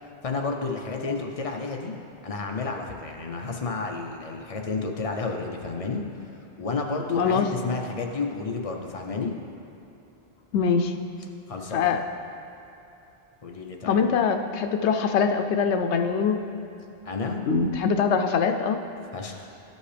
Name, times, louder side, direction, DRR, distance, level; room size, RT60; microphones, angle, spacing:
voice 1, 0.2-1.9 2.2-6.3 6.6-9.3 11.5-12.0 13.4-14.0 17.0-17.4 19.1-19.5, left 4 dB, 40° left, 2 dB, 0.6 m, -31 dB
voice 2, 7.2-7.5 10.5-10.9 11.7-12.0 13.9-16.4 17.5-18.8, left 6 dB, 85° left, 6 dB, 0.9 m, -23 dB
12.5 x 5.3 x 3.3 m, 2.9 s
omnidirectional pair, 1.1 m